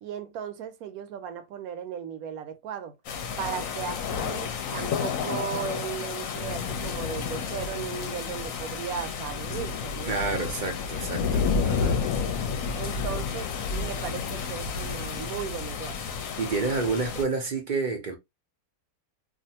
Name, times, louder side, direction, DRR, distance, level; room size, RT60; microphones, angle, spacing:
voice 1, 0.0-3.0 3.4-10.2 12.8-16.0, right 8 dB, 70° right, 1.1 m, -36 dB
sound 1, 3.0-17.2, left 6 dB, 65° left, 0.9 m, -31 dB
voice 2, 10.1-12.0 16.4-18.2, right 4 dB, 50° right, 0.6 m, -29 dB
2.5 x 2.5 x 2.7 m
omnidirectional pair, 1.7 m